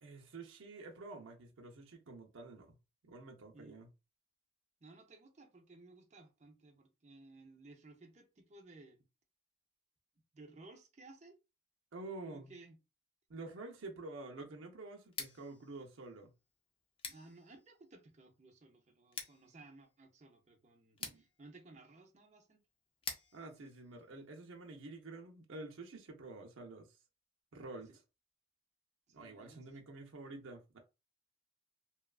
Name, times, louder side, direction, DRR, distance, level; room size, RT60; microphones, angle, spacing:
voice 1, 0.0-2.8 3.0-3.9 11.9-12.5 13.3-16.3 17.1-17.2 21.0-21.2 23.3-27.0 27.5-28.0 29.1-30.8, right 2 dB, 85° right, 0.6 m, -49 dB
voice 2, 4.8-9.0 10.3-11.4 12.2-12.8 17.1-22.6 27.9-28.0 29.1-29.8, right 2 dB, 35° right, 0.5 m, -58 dB
Scissors, 15.0-24.8, left 5 dB, 25° left, 0.4 m, -51 dB
2.8 x 2.3 x 2.3 m
head